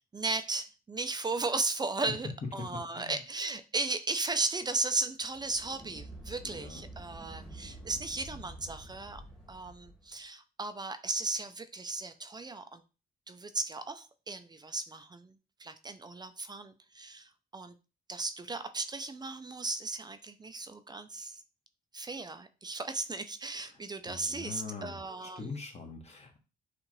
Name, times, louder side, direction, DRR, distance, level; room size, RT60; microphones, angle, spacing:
voice 1, 0.0-9.2 9.5-12.8 13.3-17.7 18.1-21.4 21.9-25.5, right 3 dB, 25° right, 10 dB, 0.5 m, -36 dB
sound 1, 5.2-10.1, right 1 dB, 5° left, 1.3 m, -48 dB
voice 2, 6.4-6.8 24.1-26.4, left 4 dB, 40° left, 2 dB, 1.5 m, -43 dB
6.4 x 2.5 x 3.1 m, 0.32 s
cardioid pair, 90°, 17 cm